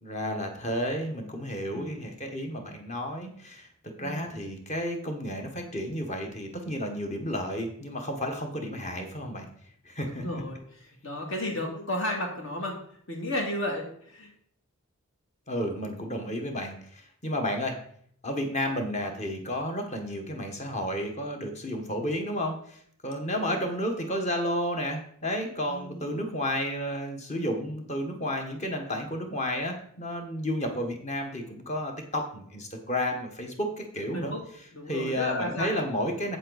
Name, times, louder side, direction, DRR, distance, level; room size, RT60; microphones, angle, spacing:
voice 1, 0.0-9.5 9.8-10.4 15.5-17.8 18.2-34.3 34.9-36.4, equal, 30° left, 3 dB, 1.2 m, -32 dB
voice 2, 1.7-2.1 4.0-4.4 10.0-12.8 13.1-14.3 23.1-23.6 25.7-26.2 34.1-34.4 34.7-35.7, left 1 dB, 60° left, 1 dB, 2.2 m, -33 dB
7.8 x 7.6 x 4.0 m, 0.63 s
head